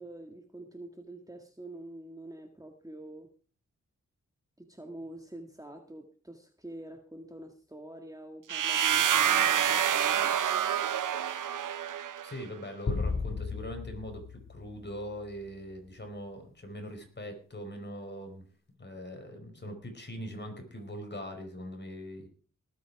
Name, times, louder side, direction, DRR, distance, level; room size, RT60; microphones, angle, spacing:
voice 1, 0.0-3.3 4.6-10.4, right 1 dB, 10° right, 4 dB, 1.9 m, -46 dB
sound 1, 8.5-12.3, right 9 dB, 70° right, 0.8 m, -27 dB
voice 2, 12.2-18.4 18.8-22.3, equal, 35° left, 5 dB, 4.8 m, -41 dB
sound 2, 12.9-15.4, left 4 dB, 55° left, 2.2 m, -35 dB
19.0 x 8.6 x 4.8 m, 0.41 s
cardioid pair, 55°, 32 cm